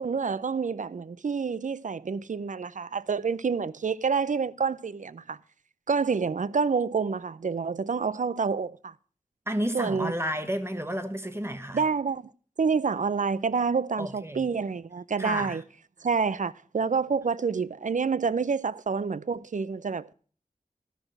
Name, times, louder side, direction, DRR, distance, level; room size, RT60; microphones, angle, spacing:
voice 1, 0.0-5.4 5.9-8.9 9.7-10.1 11.7-12.2 12.6-15.6 16.0-20.3, right 5 dB, 65° right, 0.5 m, -28 dB
voice 2, 9.5-11.8 14.0-14.5 15.2-15.6, equal, 20° right, 1.2 m, -31 dB
12.5 x 6.2 x 6.4 m
wide cardioid pair, 70°, 14 cm